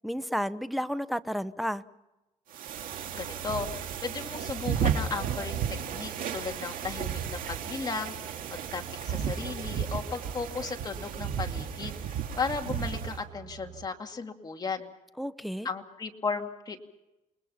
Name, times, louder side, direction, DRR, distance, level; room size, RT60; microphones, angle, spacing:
voice 1, 0.0-1.8 15.2-15.7, equal, ahead, 13 dB, 0.8 m, -32 dB
sound 1, 2.5-13.2, right 8 dB, 80° right, 2.3 m, -34 dB
sound 2, 2.9-13.9, right 11 dB, 45° right, 3.3 m, -49 dB
voice 2, 3.1-5.6 5.9-8.1 8.5-14.9 15.6-16.8, left 4 dB, 30° left, 3 dB, 2.5 m, -35 dB
28.5 x 21.5 x 5.7 m, 0.99 s
cardioid pair, 130°, 14 cm